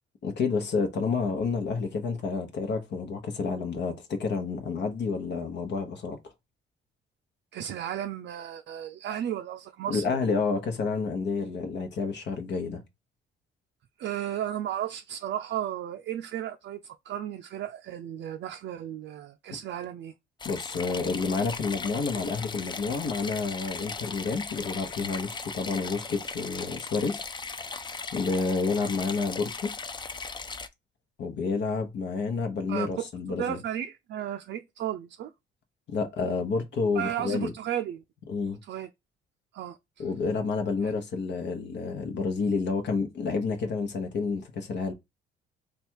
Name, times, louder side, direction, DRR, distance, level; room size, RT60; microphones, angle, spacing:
voice 1, 0.2-6.2 9.9-12.8 20.4-27.2 28.1-29.7 31.2-33.6 35.9-37.5 38.3-38.6 40.0-44.9, left 4 dB, 60° left, 1.0 m, -29 dB
voice 2, 7.5-10.4 14.0-20.1 32.7-33.0 33.3-35.3 36.9-38.0 38.6-38.9 39.5-40.0 40.8-40.9, right 10 dB, 60° right, 0.4 m, -34 dB
sound 1, 20.4-30.7, left 4 dB, 25° left, 0.4 m, -38 dB
3.3 x 2.4 x 4.4 m
cardioid pair, 90°, 20 cm